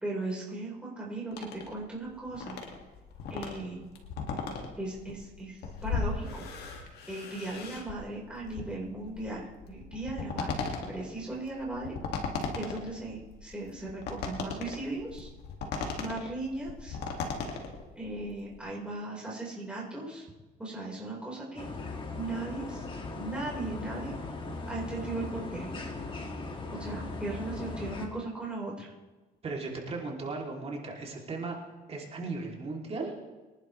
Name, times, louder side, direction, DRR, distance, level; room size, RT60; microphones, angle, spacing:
voice 1, 0.0-2.6 3.3-3.9 4.8-6.5 7.1-10.6 10.9-12.0 12.5-15.3 16.0-17.0 17.9-20.3 20.6-21.7 22.2-22.9 23.2-24.1 24.7-25.7 26.7-28.9, right 2 dB, 5° right, -5 dB, 4.6 m, -37 dB
sound 1, 1.3-18.6, left 5 dB, 75° left, 2.3 m, -38 dB
sound 2, 21.6-28.1, left 3 dB, 30° left, 2.2 m, -38 dB
voice 2, 29.4-31.6 31.9-33.2, right 3 dB, 35° right, -1 dB, 3.1 m, -36 dB
23.5 x 11.0 x 3.3 m, 1.2 s
cardioid pair, 110°, 17 cm